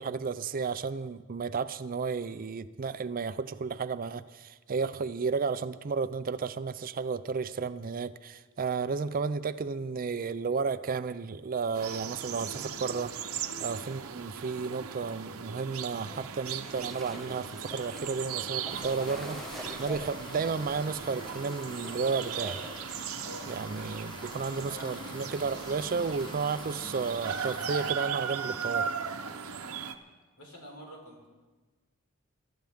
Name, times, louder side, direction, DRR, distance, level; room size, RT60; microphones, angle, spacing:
voice 1, 0.0-13.1 13.6-22.6 23.5-28.9, right 5 dB, 40° right, 13 dB, 0.5 m, -33 dB
sound 1, 11.7-29.9, right 7 dB, 75° right, 0.9 m, -38 dB
sound 2, 16.1-23.0, equal, ahead, 1.5 m, -46 dB
sound 3, 18.7-27.9, left 2 dB, 20° left, 1.0 m, -46 dB
voice 2, 23.2-23.5 24.4-25.0 30.4-31.3, equal, 85° left, 0 dB, 4.0 m, -47 dB
22.5 x 13.0 x 3.6 m, 1.3 s
head